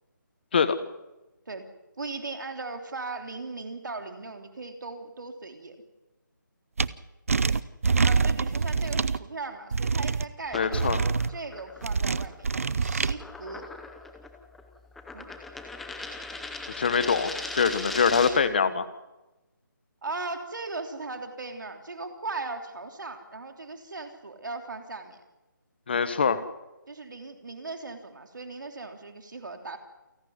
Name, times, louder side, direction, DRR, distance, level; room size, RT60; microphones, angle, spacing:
voice 1, 2.0-5.8 8.0-13.6 15.1-15.3 20.0-25.2 26.9-29.8, right 3 dB, 70° right, 5 dB, 3.3 m, -38 dB
sound 1, 6.8-6.9 7.3-9.2 9.7-10.2 10.7-11.3 11.8-13.1, right 4 dB, 45° right, 0.7 m, -25 dB
sound 2, 10.4-18.5, left 3 dB, ahead, 0.7 m, -39 dB
voice 2, 10.5-11.0 16.8-18.9 25.9-26.4, left 6 dB, 30° left, 13 dB, 1.3 m, -24 dB
28.5 x 11.5 x 9.6 m, 1.0 s
hypercardioid pair, 175°, 11 cm